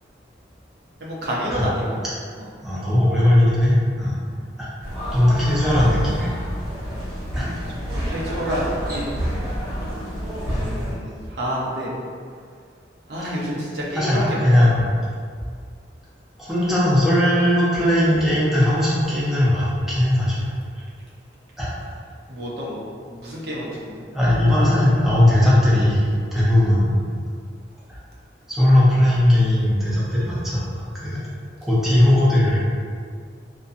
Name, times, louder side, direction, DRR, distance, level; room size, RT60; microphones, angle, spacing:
voice 1, 1.0-2.0 2.4-2.5 7.7-9.0 10.5-11.9 13.1-14.2 14.5-14.7 22.3-22.8 23.1-24.0, equal, 60° right, -6 dB, 0.6 m, -29 dB
voice 2, 2.6-4.1 4.6-4.7 5.1-6.3 7.3-7.5 8.5-8.6 13.9-14.9 16.4-20.4 21.6-21.7 24.1-27.0 28.5-31.2 31.6-32.6, left 1 dB, ahead, -9 dB, 0.5 m, -18 dB
sound 1, 4.8-10.9, equal, 35° right, 1.2 m, -28 dB
2.5 x 2.2 x 2.5 m, 2.1 s
head